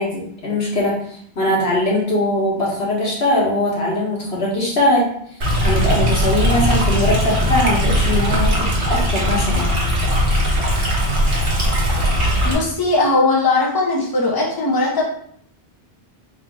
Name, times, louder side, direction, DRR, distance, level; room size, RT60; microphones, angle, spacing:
voice 1, 0.0-5.1 5.6-9.7, left 1 dB, 90° left, -4 dB, 1.6 m, -21 dB
Stream, 5.4-12.5, equal, 55° right, 1.1 m, -19 dB
voice 2, 12.4-15.0, left 2 dB, 25° left, -2 dB, 0.8 m, -18 dB
3.4 x 2.7 x 4.6 m, 0.64 s
omnidirectional pair, 1.0 m